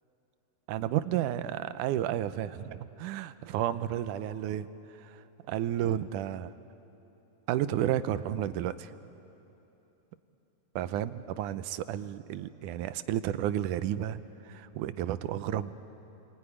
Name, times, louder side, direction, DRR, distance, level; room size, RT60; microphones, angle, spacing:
voice 1, 0.7-4.7 5.0-5.2 5.5-6.5 7.5-8.9 10.8-15.7, right 11 dB, 80° right, 13 dB, 2.1 m, -32 dB
26.5 x 20.0 x 9.9 m, 3.0 s
omnidirectional pair, 3.7 m